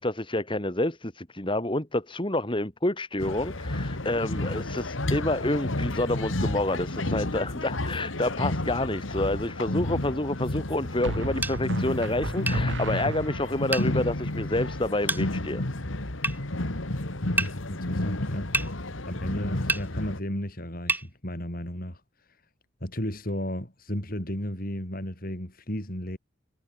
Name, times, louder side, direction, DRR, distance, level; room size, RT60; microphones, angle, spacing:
voice 1, 0.0-15.6, left 1 dB, 25° left, 3.0 m, -28 dB
sound 1, 3.2-20.2, left 1 dB, 90° left, 2.3 m, -31 dB
sound 2, 8.4-8.8 11.0-13.7, right 1 dB, 70° right, 4.0 m, -35 dB
sound 3, 11.4-11.6 12.5-12.6 13.7-13.9 15.1-15.2 16.2-16.4 17.4-17.5 18.5-18.7 19.7-19.9 20.9-21.1, right 2 dB, 10° right, 2.0 m, -27 dB
voice 2, 17.7-18.5 19.1-22.0 22.8-26.2, equal, 50° left, 6.6 m, -33 dB
head